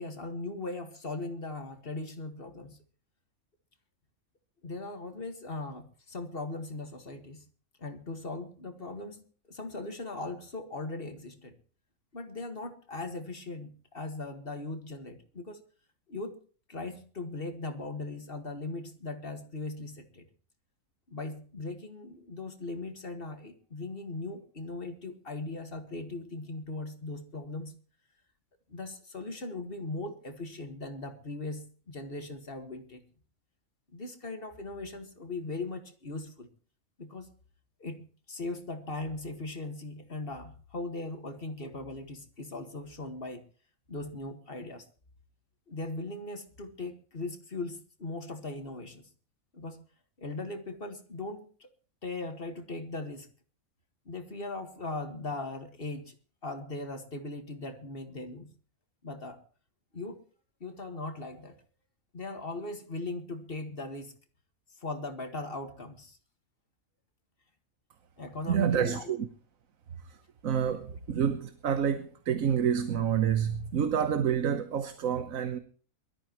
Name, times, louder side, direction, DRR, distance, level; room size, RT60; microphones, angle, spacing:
voice 1, 0.0-2.8 4.6-7.4 7.8-11.6 12.1-15.6 16.1-16.4 16.7-20.3 21.1-27.7 28.7-33.0 33.9-36.5 37.0-37.3 37.8-43.4 43.9-44.9 45.7-49.1 49.5-49.8 50.2-51.7 52.0-53.3 54.1-56.1 56.4-58.5 59.0-59.4 59.9-60.2 60.6-61.6 62.1-64.1 64.7-66.2 68.2-69.2 70.6-70.7, left 2 dB, 45° left, 2.0 m, -39 dB
voice 2, 68.5-69.3 70.0-70.2 70.4-75.6, right 8 dB, 80° right, 1.4 m, -28 dB
23.0 x 13.0 x 3.0 m
omnidirectional pair, 1.4 m